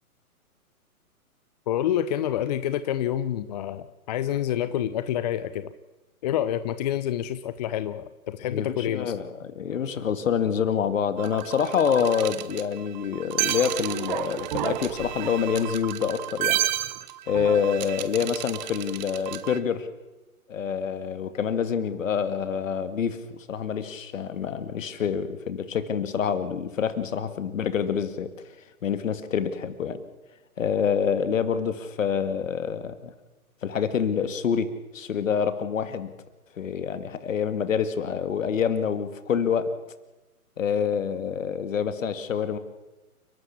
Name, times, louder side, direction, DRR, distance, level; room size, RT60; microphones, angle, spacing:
voice 1, 1.7-5.7 6.2-9.2, left 11 dB, 30° left, 13 dB, 0.7 m, -28 dB
voice 2, 8.5-16.6 17.3-19.9 20.5-28.3 28.8-30.0 30.6-33.1 33.6-36.1 36.6-39.7 40.6-42.6, left 7 dB, 60° left, 11 dB, 2.4 m, -27 dB
sound 1, 11.2-19.6, right 14 dB, 30° right, 1.0 m, -31 dB
29.5 x 12.5 x 8.6 m, 1.1 s
hypercardioid pair, 135°, 43 cm